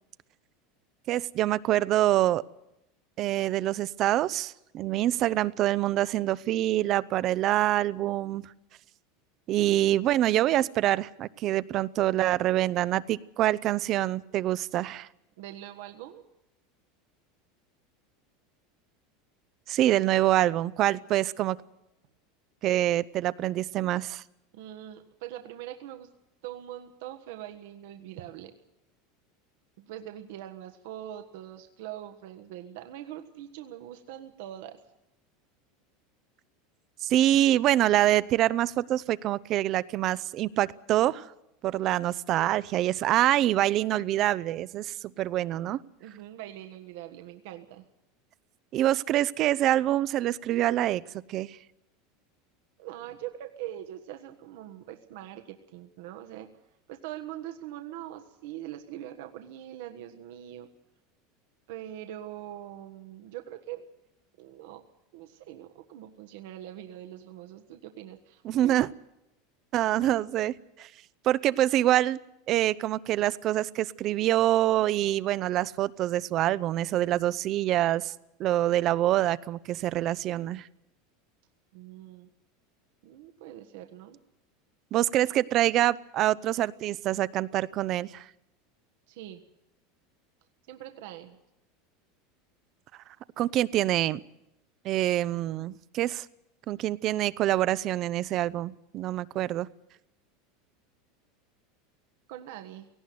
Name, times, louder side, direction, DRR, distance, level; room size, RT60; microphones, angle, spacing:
voice 1, 1.1-2.4 3.2-8.5 9.5-15.1 19.7-21.6 22.6-24.2 37.0-41.3 41.6-45.8 48.7-51.0 51.3-51.6 68.4-68.9 69.7-70.9 71.2-72.2 72.5-78.1 78.4-80.7 84.9-88.2 93.4-94.2 94.8-96.3 96.7-99.7, right 13 dB, 40° right, 19 dB, 0.7 m, -25 dB
voice 2, 15.4-16.2 24.5-26.1 26.4-28.5 29.8-34.8 46.0-47.8 52.8-56.5 56.9-60.7 61.7-63.9 64.4-64.8 65.1-68.7 81.7-82.3 83.0-84.2 89.1-89.4 90.7-91.4 102.3-102.9, right 12 dB, 70° right, 6 dB, 1.5 m, -42 dB
18.0 x 16.0 x 9.5 m, 0.88 s
supercardioid pair, 140°, 0 cm